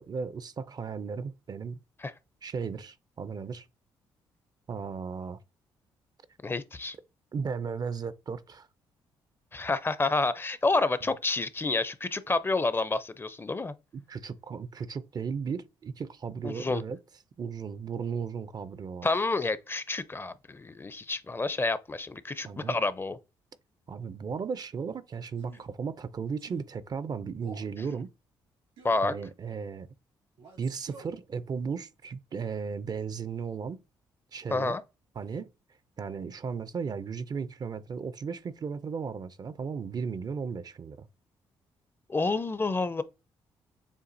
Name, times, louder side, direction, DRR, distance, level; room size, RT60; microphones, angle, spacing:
voice 1, 0.0-1.8 2.4-3.7 4.7-5.4 7.3-8.7 14.1-17.0 17.4-19.1 22.4-22.8 23.9-28.1 29.0-29.9 30.6-33.8 34.3-34.7 35.2-35.5 36.0-41.1, right 6 dB, 45° right, 0.5 m, -35 dB
voice 2, 6.4-6.9 9.5-13.7 16.4-16.8 19.0-23.2 28.8-29.1 34.5-34.8 42.1-43.0, left 3 dB, 25° left, 0.5 m, -29 dB
Male speech man speaking, 25.3-25.7 26.4-26.7 27.3-27.7 28.8-29.1 30.4-31.2, right 4 dB, 80° right, 2.8 m, -50 dB
6.9 x 2.4 x 2.6 m
supercardioid pair, 65°, 10 cm